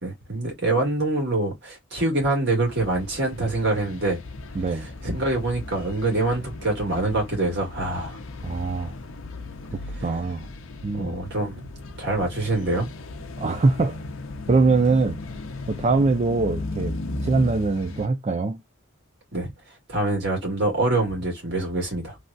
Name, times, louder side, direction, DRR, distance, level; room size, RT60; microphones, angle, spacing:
voice 1, 0.0-4.2 5.0-8.2 10.0-10.1 10.9-11.7 12.0-12.9 19.3-19.5 19.9-22.2, right 2 dB, 55° right, 1.9 m, -25 dB
sound 1, 2.7-18.1, left 2 dB, 70° left, 0.6 m, -36 dB
voice 2, 4.5-4.9 8.4-8.9 10.0-10.5 10.8-11.1 13.4-14.0 14.5-15.2 15.7-17.0 17.2-18.6, right 3 dB, 30° right, 0.3 m, -22 dB
3.3 x 2.3 x 2.5 m
head